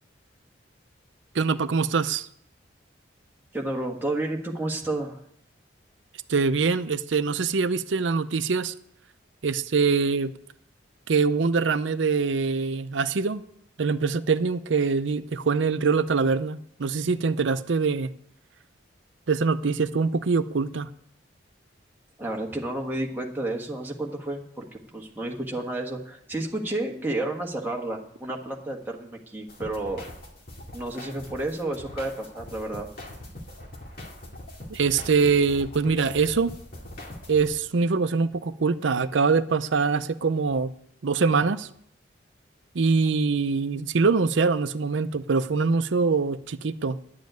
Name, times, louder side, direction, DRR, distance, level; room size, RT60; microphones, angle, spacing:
voice 1, 1.3-2.3 6.3-8.7 9.4-10.3 11.1-13.4 13.8-18.1 19.3-20.9 34.7-36.5 37.3-40.7 41.0-41.7 42.7-47.0, right 4 dB, 80° right, 0.6 m, -24 dB
voice 2, 3.5-5.2 22.2-30.0 30.7-32.9, right 2 dB, 10° right, 1.4 m, -31 dB
sound 1, 29.5-37.5, left 1 dB, 50° left, 2.3 m, -42 dB
10.5 x 7.5 x 9.1 m
head